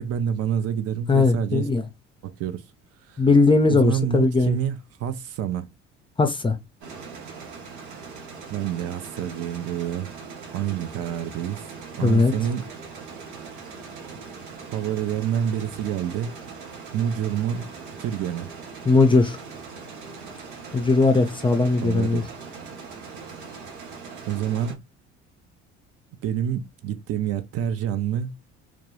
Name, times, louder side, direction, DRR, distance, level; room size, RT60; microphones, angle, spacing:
voice 1, 0.0-1.7 2.2-2.6 3.1-3.2 3.7-5.7 8.5-10.1 10.5-11.6 11.9-12.7 14.7-16.4 16.9-18.5 21.8-22.3 24.3-24.8 26.2-28.3, right 9 dB, 50° right, 0.4 m, -27 dB
voice 2, 1.1-1.8 3.2-4.6 6.2-6.6 12.0-12.3 18.9-19.4 20.7-22.2, left 3 dB, 15° left, 0.4 m, -19 dB
sound 1, 6.8-24.8, right 5 dB, 80° right, 0.8 m, -40 dB
2.2 x 2.0 x 2.9 m
hypercardioid pair, 60°, 33 cm